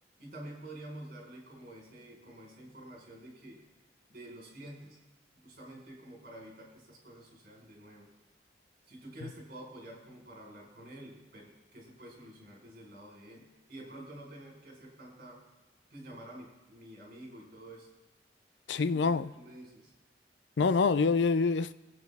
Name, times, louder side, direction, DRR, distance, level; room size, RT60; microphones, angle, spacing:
voice 1, 0.2-3.6 4.1-5.0 5.4-8.1 8.9-15.4 15.9-17.9 18.9-19.9, right 1 dB, 55° right, -2 dB, 4.5 m, -49 dB
voice 2, 18.7-19.3 20.6-21.7, left 4 dB, 75° left, 14 dB, 0.5 m, -26 dB
24.0 x 8.4 x 3.5 m, 1.1 s
head